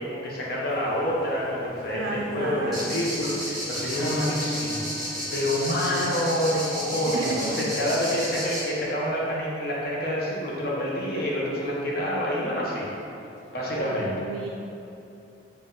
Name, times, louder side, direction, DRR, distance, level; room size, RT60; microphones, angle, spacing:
voice 1, 0.0-4.8 5.3-12.9 13.5-14.1, equal, 55° left, -5 dB, 0.7 m, -27 dB
sound 1, 0.7-8.2, equal, 85° left, 1.1 m, -40 dB
voice 2, 1.9-3.0 7.1-7.6 13.8-14.5, right 3 dB, 80° right, -1 dB, 0.3 m, -32 dB
sound 2, 2.7-8.6, equal, ahead, 0.8 m, -32 dB
4.1 x 2.2 x 3.7 m, 2.8 s
head